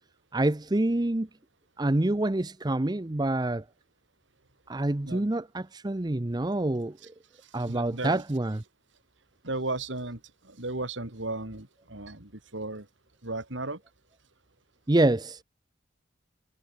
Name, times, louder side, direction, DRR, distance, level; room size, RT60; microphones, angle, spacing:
voice 1, 0.3-1.3 1.8-3.6 4.7-7.0 7.5-8.6 14.9-15.4, right 1 dB, 20° right, 0.6 m, -26 dB
voice 2, 7.6-8.2 9.4-12.9 13.2-13.8, right 2 dB, 70° right, 3.3 m, -35 dB
head